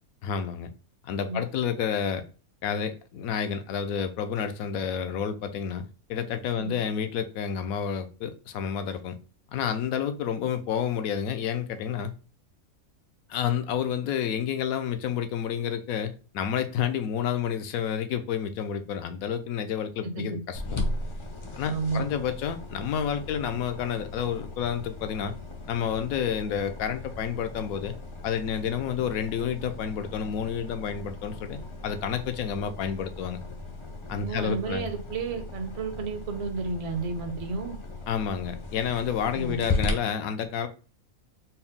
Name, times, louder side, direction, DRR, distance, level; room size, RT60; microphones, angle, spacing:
voice 1, 0.2-0.7 1.0-2.2 2.6-9.2 9.5-12.1 13.3-20.8 21.6-25.3 25.7-27.9 28.2-33.4 34.1-34.9 38.1-40.7, left 8 dB, 80° left, 1.0 m, -30 dB
voice 2, 20.0-20.4 21.7-22.0 34.2-37.8 39.3-39.6, right 4 dB, 40° right, 0.5 m, -32 dB
sound 1, 20.5-39.9, left 3 dB, 45° left, 0.4 m, -37 dB
4.4 x 2.1 x 3.6 m
omnidirectional pair, 1.5 m